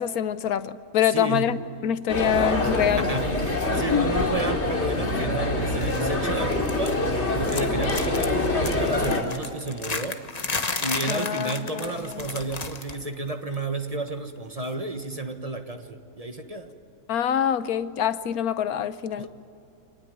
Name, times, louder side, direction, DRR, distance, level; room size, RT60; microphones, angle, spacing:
voice 1, 0.0-1.6 1.8-3.1 3.8-4.1 11.1-12.4 17.1-19.3, left 9 dB, 80° left, 1.3 m, -25 dB
voice 2, 1.1-1.6 2.6-7.0 7.3-10.2 10.8-16.7 19.2-19.3, right 2 dB, 25° right, 1.4 m, -31 dB
sound 1, 2.1-9.2, left 2 dB, 50° left, 2.9 m, -25 dB
sound 2, 5.7-6.1 6.4-7.2 7.4-13.0 13.3-13.5 14.6-14.7, left 3 dB, 30° left, 1.2 m, -33 dB
26.0 x 19.5 x 9.3 m
omnidirectional pair, 1.5 m